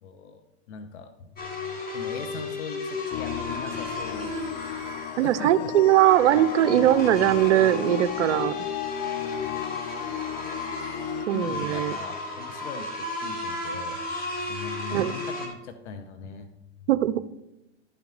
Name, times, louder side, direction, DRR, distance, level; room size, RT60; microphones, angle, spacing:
voice 1, 0.0-4.3 5.2-5.7 6.3-6.4 6.7-6.9 11.3-14.0 14.4-16.5, left 5 dB, 75° left, 8 dB, 1.0 m, -40 dB
sound 1, 1.4-15.5, left 2 dB, 25° left, 2.4 m, -34 dB
sound 2, 3.1-11.3, left 14 dB, 45° left, 0.4 m, -35 dB
voice 2, 5.2-8.5 11.3-11.9 14.9-15.1 16.9-17.2, right 13 dB, 85° right, 15 dB, 0.6 m, -20 dB
12.0 x 5.8 x 3.9 m, 0.91 s
hypercardioid pair, 95°, 35 cm